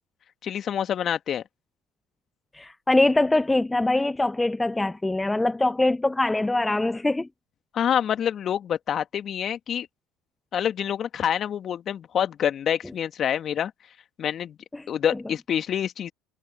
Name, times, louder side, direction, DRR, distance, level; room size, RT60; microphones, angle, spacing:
voice 1, 0.4-1.4 7.7-9.9 10.5-13.7 14.2-14.6 14.9-16.1, left 9 dB, 45° left, 2.1 m, -26 dB
voice 2, 2.5-7.3 14.7-14.8, left 2 dB, 10° left, 0.6 m, -23 dB
hypercardioid pair, 75°, 0 cm